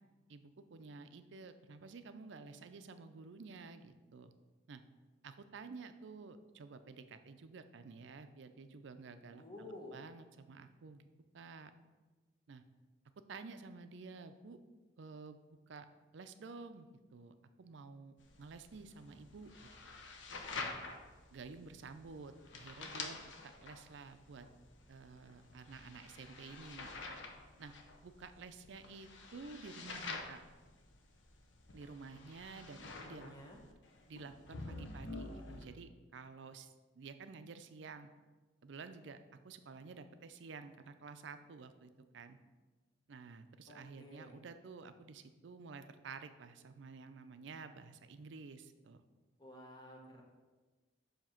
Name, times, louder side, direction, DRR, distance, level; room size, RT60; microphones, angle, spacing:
voice 1, 0.3-4.3 4.7-4.8 5.2-11.0 11.3-11.7 12.5-12.6 13.3-14.6 15.0-15.4 15.7-15.9 16.1-19.7 20.5-20.7 21.3-24.5 24.9-26.9 27.6-27.7 28.0-30.4 31.7-33.4 34.1-38.1 38.6-39.2 39.4-42.4 43.1-49.0, right 4 dB, 70° right, 10 dB, 0.4 m, -51 dB
voice 2, 9.3-10.0 32.8-33.6 43.7-44.4 49.4-50.2, left 1 dB, 20° left, -1 dB, 0.9 m, -52 dB
sound 1, 18.2-35.6, left 3 dB, 70° left, 0.8 m, -48 dB
7.3 x 2.9 x 5.7 m, 1.3 s
head